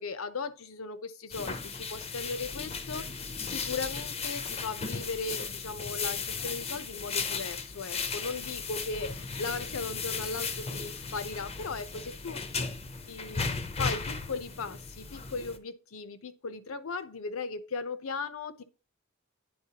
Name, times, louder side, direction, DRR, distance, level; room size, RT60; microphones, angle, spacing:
voice 1, 0.0-12.4 13.1-13.4 13.8-18.6, left 4 dB, 75° left, 0.7 m, -37 dB
sound 1, 1.3-15.6, left 5 dB, 30° left, 0.6 m, -36 dB
9.5 x 4.4 x 2.8 m
head